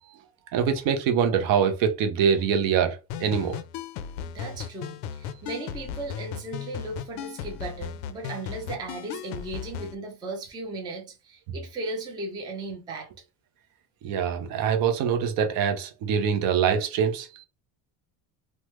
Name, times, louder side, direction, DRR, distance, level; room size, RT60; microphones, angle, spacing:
voice 1, 0.5-3.6 14.0-17.5, right 7 dB, 55° right, 0.6 m, -24 dB
sound 1, 3.1-9.9, left 9 dB, 85° left, 0.5 m, -36 dB
voice 2, 4.3-13.1, right 2 dB, 10° right, 0.4 m, -36 dB
3.2 x 2.1 x 3.0 m
cardioid pair, 165°, 41 cm